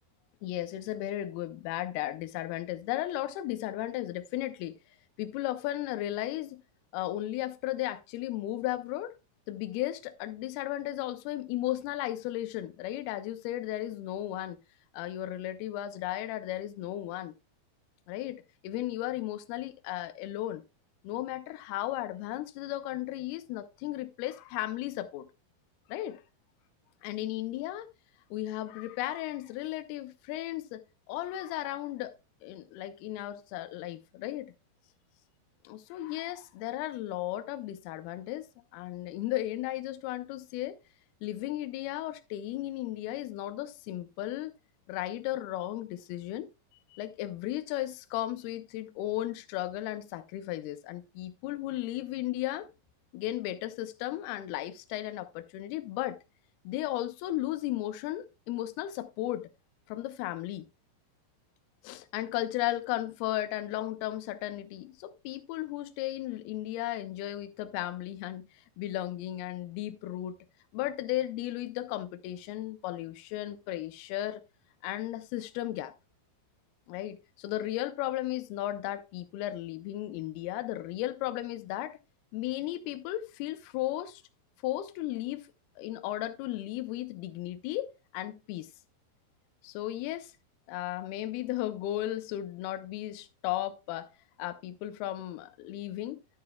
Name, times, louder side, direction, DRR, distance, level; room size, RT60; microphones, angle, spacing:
voice 1, 0.4-4.7 5.2-6.6 6.9-9.1 9.5-14.6 14.9-17.3 18.1-20.6 21.0-25.3 25.9-26.2 27.0-27.9 28.3-30.8 31.1-32.1 32.4-34.5 35.7-38.5 38.7-40.8 41.2-44.5 44.9-46.5 46.9-52.7 53.1-56.2 56.6-59.5 59.9-60.7 61.8-70.4 70.7-74.4 74.8-75.9 76.9-82.0 82.3-84.2 84.6-85.5 85.8-88.7 89.6-90.3 90.7-94.1 94.4-96.2, left 14 dB, 80° left, 2.6 m, -35 dB
10.5 x 8.9 x 2.2 m
omnidirectional pair, 4.6 m